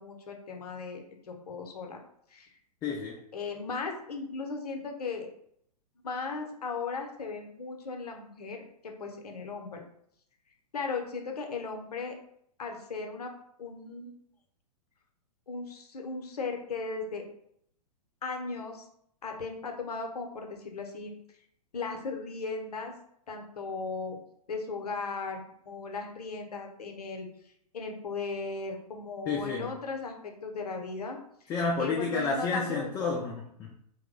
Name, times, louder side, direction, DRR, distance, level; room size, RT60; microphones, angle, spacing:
voice 1, 0.0-2.0 2.3-2.5 3.3-5.3 6.0-9.8 10.7-12.1 12.6-13.3 13.6-14.2 15.5-17.3 18.2-18.8 19.2-21.1 21.7-22.9 23.3-24.2 24.5-25.4 25.7-27.3 27.7-31.2 31.8-33.2, left 4 dB, 75° left, 3 dB, 0.7 m, -37 dB
voice 2, 2.8-3.2 29.3-29.7 31.5-33.7, left 4 dB, 20° left, -1 dB, 0.3 m, -30 dB
2.9 x 2.0 x 3.6 m, 0.71 s
figure-of-eight pair, 110°, 20 cm